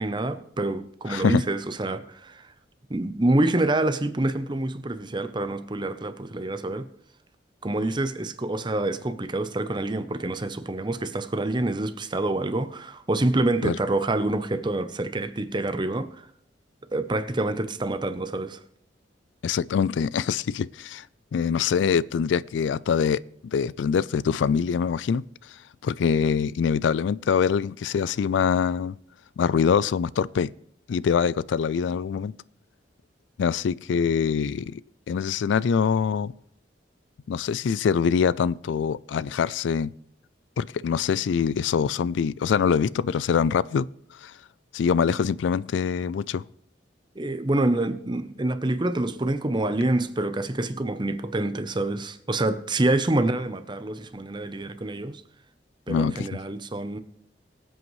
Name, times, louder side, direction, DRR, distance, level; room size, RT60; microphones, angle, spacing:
voice 1, 0.0-2.5 2.9-6.9 7.6-16.1 16.9-18.6 47.2-55.2 55.9-57.0, right 2 dB, 25° right, 0.7 m, -27 dB
voice 2, 1.1-1.4 13.6-13.8 19.4-21.0 21.3-25.2 25.8-28.9 29.4-30.5 30.9-32.3 33.4-34.8 35.1-36.3 37.3-39.9 40.6-43.9 44.2-44.3 44.7-46.4 55.9-56.3, left 6 dB, 85° left, 0.3 m, -24 dB
23.5 x 7.9 x 3.1 m
head